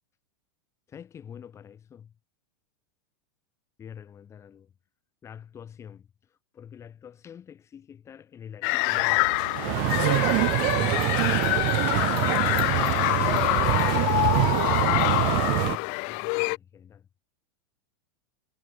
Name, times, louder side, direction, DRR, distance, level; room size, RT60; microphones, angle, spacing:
voice 1, 0.9-2.1 3.8-4.7 5.2-11.3 12.8-14.7 15.5-17.1, left 8 dB, 25° left, 6.6 m, -46 dB
sound 1, 8.6-16.6, left 40 dB or more, 55° left, 1.8 m, -25 dB
sound 2, 8.9-15.5, right 14 dB, 75° right, 2.3 m, -38 dB
sound 3, 9.5-15.8, right 32 dB, 50° right, 0.6 m, -25 dB
supercardioid pair, 125°, 11 cm